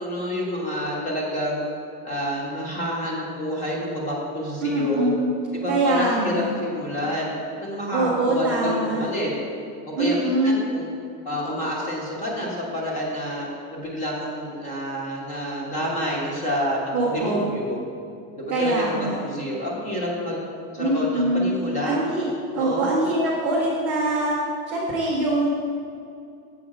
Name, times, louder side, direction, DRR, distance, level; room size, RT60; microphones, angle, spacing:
voice 1, 0.0-1.6 2.0-5.1 5.5-7.3 7.6-9.3 10.0-10.9 11.2-16.8 17.0-17.8 18.4-20.4 20.7-22.0 22.5-22.9, equal, 15° left, -3 dB, 1.0 m, -28 dB
voice 2, 4.6-5.3 5.7-6.5 7.9-9.1 10.0-10.6 16.9-17.5 18.5-19.2 20.8-21.5 21.8-22.2 22.5-24.4 24.7-25.5, right 2 dB, 15° right, -8 dB, 0.4 m, -23 dB
7.7 x 5.1 x 4.8 m, 2.5 s
supercardioid pair, 170°, 49 cm